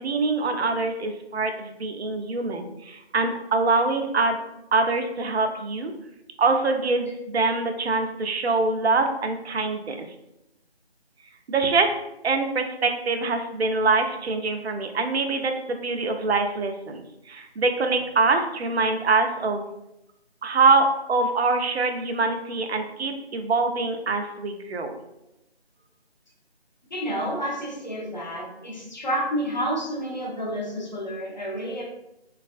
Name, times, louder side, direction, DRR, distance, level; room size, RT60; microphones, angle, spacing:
voice 1, 0.0-4.4 4.7-5.9 6.4-10.1 11.5-11.9 12.2-19.7 20.4-25.0, right 3 dB, 75° right, 5 dB, 0.5 m, -24 dB
voice 2, 26.9-31.8, equal, 45° left, -1 dB, 0.6 m, -29 dB
3.2 x 2.4 x 2.4 m, 0.87 s
figure-of-eight pair, 170°, 32 cm